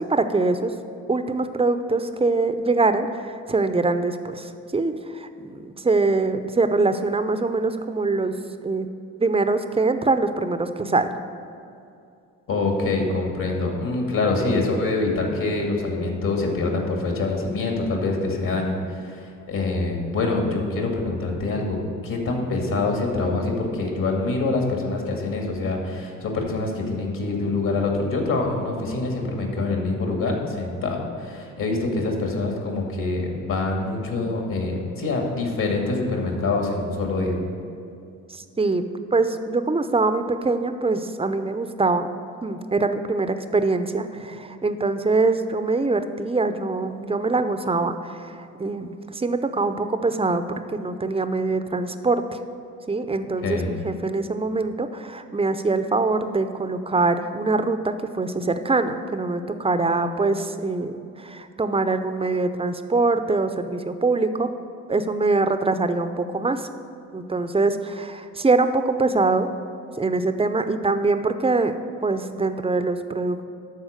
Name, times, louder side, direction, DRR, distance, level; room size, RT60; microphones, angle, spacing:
voice 1, 0.1-0.7 1.1-8.4 8.6-8.9 9.2-11.1 38.3-42.1 42.4-52.2 52.9-64.5 64.9-66.7 67.1-69.5 70.0-71.8 72.0-73.5, right 3 dB, 15° right, 9 dB, 0.6 m, -23 dB
voice 2, 12.5-21.8 22.0-37.4 53.4-53.7, left 3 dB, 60° left, 1 dB, 2.3 m, -25 dB
12.0 x 4.3 x 6.5 m, 2.5 s
hypercardioid pair, 55°, 39 cm